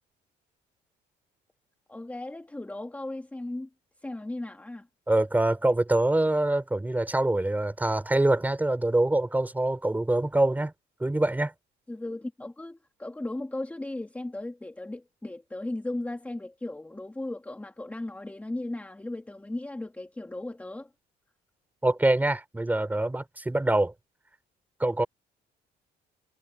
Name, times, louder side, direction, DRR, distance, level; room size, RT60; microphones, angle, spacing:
voice 1, 1.9-3.7 4.0-4.9 11.9-20.9, left 2 dB, 10° left, 1.9 m, -36 dB
voice 2, 5.1-10.7 11.0-11.5 21.8-23.9 24.8-25.1, right 2 dB, 10° right, 3.7 m, -25 dB
cardioid pair, 110°, 17 cm